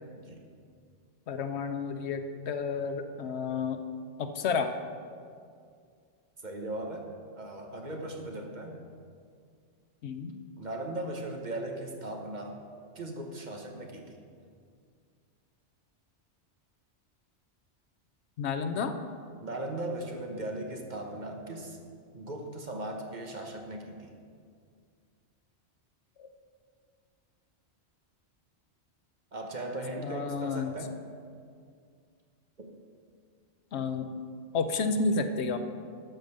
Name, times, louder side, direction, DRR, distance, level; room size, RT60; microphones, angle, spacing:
voice 1, 1.3-3.8 4.2-4.7 10.0-10.3 18.4-18.9 26.2-26.3 30.0-30.7 33.7-34.1 34.5-35.6, left 4 dB, 75° left, 8 dB, 1.0 m, -31 dB
voice 2, 6.4-7.1 7.4-8.8 10.6-12.6 12.9-14.1 19.4-21.8 22.1-24.1 29.3-30.9 32.6-32.7, right 1 dB, 45° right, 2 dB, 1.1 m, -38 dB
12.0 x 5.2 x 6.5 m, 2.2 s
omnidirectional pair, 1.2 m